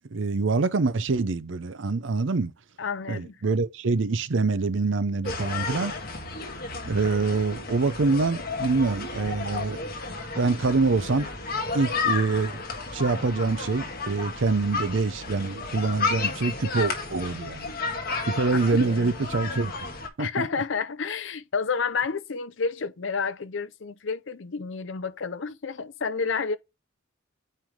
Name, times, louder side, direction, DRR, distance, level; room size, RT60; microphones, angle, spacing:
voice 1, 0.1-2.5 3.1-5.9 6.9-9.8 10.4-11.3 11.7-12.6 12.9-17.7 18.3-19.7 20.2-20.5, right 3 dB, 65° right, 0.6 m, -25 dB
voice 2, 2.8-3.4 18.5-19.1 20.2-26.6, left 5 dB, 65° left, 0.6 m, -30 dB
sound 1, 5.2-20.1, left 4 dB, 45° left, 1.5 m, -32 dB
9.1 x 3.4 x 3.6 m
head